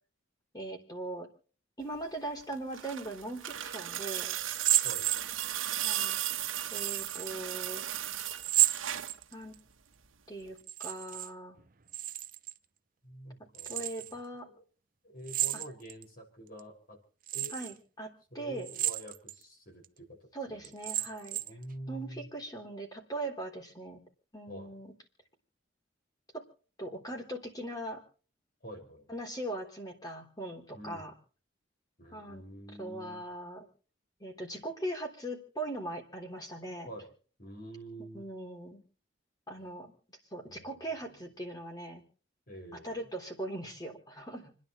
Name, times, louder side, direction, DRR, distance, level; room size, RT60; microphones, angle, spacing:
voice 1, 0.5-1.3 1.8-4.4 5.8-6.2 6.7-7.8 9.3-9.5 10.3-11.6 13.7-14.5 17.5-18.7 20.3-21.4 21.9-24.0 24.3-24.9 26.3-26.4 26.8-28.0 29.1-31.1 32.1-32.4 32.8-33.7 34.2-36.9 38.1-38.8 39.5-39.9 40.3-42.0 42.7-44.5, right 1 dB, 20° left, 3 dB, 3.6 m, -40 dB
sound 1, 2.4-9.2 10.5-10.6, right 12 dB, 90° right, 1.2 m, -36 dB
sound 2, 4.5-5.7 6.7-7.3 8.4-9.6 10.6-11.3 11.6-12.6 13.5-14.1 15.3-16.0 16.6-16.7 17.3-17.7 18.6-19.4 19.8-19.9 20.6-21.6, right 14 dB, 45° right, 0.7 m, -31 dB
voice 2, 13.0-13.8 14.4-14.6 15.0-17.0 17.3-17.6 18.3-20.2 20.5-20.7 21.4-22.3 24.5-24.7 28.6-29.1 30.7-31.1 32.0-33.2 36.8-37.1 37.4-38.2 40.5-40.7 41.0-41.2 42.5-43.0, right 1 dB, 45° left, 2 dB, 5.8 m, -47 dB
29.5 x 10.5 x 3.1 m, 0.40 s
head